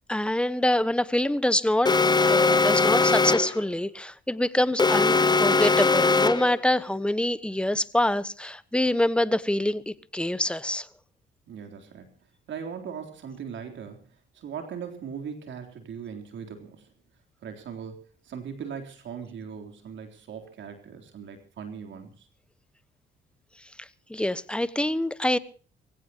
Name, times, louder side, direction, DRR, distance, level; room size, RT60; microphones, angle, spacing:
voice 1, 0.1-1.9 2.3-10.9 23.8-25.4, left 1 dB, 5° left, 15 dB, 1.2 m, -25 dB
Alarm, 1.9-3.6 4.8-6.6, left 4 dB, 20° left, 0.9 m, -21 dB
voice 2, 11.5-12.1 12.5-16.9 17.4-22.3, right 7 dB, 70° right, 5 dB, 3.7 m, -39 dB
23.5 x 17.0 x 3.0 m, 0.41 s
cardioid pair, 90°, 20 cm